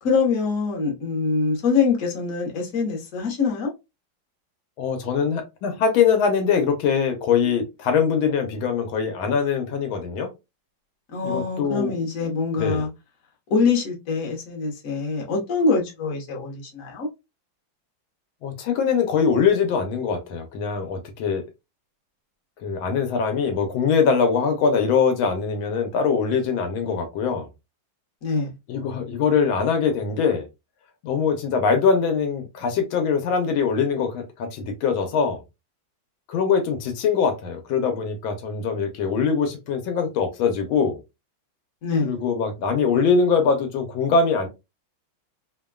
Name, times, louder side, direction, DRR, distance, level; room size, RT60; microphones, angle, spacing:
voice 1, 0.0-3.7 11.1-12.9 13.5-17.1 28.2-28.5 41.8-42.2, left 4 dB, 50° left, 1.1 m, -24 dB
voice 2, 4.8-10.3 11.2-11.9 12.6-12.8 18.4-21.5 22.6-27.5 28.7-30.5 31.0-35.4 36.3-41.0 42.0-44.5, left 6 dB, 80° left, 1.4 m, -22 dB
3.3 x 2.1 x 2.2 m
omnidirectional pair, 2.2 m